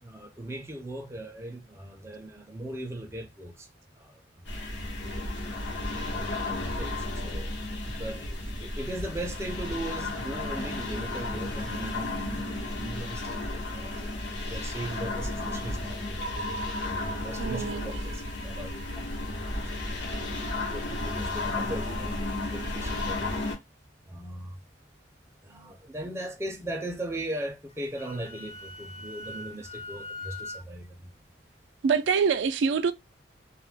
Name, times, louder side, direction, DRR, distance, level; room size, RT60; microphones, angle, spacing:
voice 1, 0.0-3.7 3.9-4.5 4.8-5.6 6.1-16.2 16.9-23.4 24.0-24.6 25.4-31.4, right 1 dB, 15° right, 0.5 m, -39 dB
sound 1, 4.4-23.6, left 2 dB, 75° left, 0.9 m, -33 dB
sound 2, 16.2-20.4, right 1 dB, 50° left, 1.0 m, -41 dB
voice 2, 17.4-17.9 31.8-32.9, right 6 dB, 80° right, 0.3 m, -25 dB
Wind instrument woodwind instrument, 27.7-30.6, left 2 dB, 35° left, 0.5 m, -42 dB
2.3 x 2.0 x 3.2 m
head